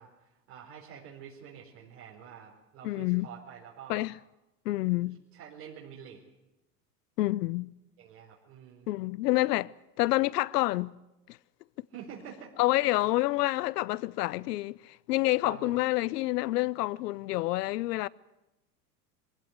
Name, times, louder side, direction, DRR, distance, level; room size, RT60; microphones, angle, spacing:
voice 1, 0.0-4.1 5.0-6.2 8.0-8.9 11.9-12.5 15.4-15.8, right 8 dB, 70° right, 4.6 m, -47 dB
voice 2, 2.8-3.3 3.9-4.1 4.6-5.2 7.2-7.7 8.9-9.7 10.0-10.9 11.3-11.4 12.6-18.1, left 18 dB, 75° left, 0.8 m, -28 dB
23.0 x 16.5 x 9.5 m
hypercardioid pair, 95°, 48 cm